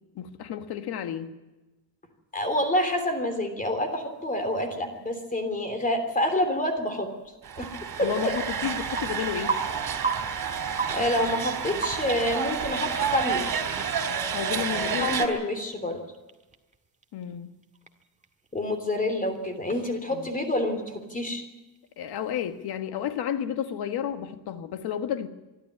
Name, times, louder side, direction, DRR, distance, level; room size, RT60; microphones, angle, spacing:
voice 1, 0.1-1.3 8.0-9.6 14.3-15.4 17.1-17.5 20.1-20.3 22.0-25.3, left 9 dB, 85° left, 9 dB, 1.7 m, -32 dB
voice 2, 2.3-7.1 7.6-7.7 8.0-8.1 10.9-13.5 15.0-16.0 18.5-21.4, left 1 dB, 20° left, 7 dB, 3.3 m, -27 dB
sound 1, 3.8-22.8, right 5 dB, 20° right, 1.8 m, -41 dB
sound 2, 7.4-15.3, right 7 dB, 65° right, 3.4 m, -30 dB
24.5 x 12.5 x 9.6 m, 1.1 s
cardioid pair, 135°, 38 cm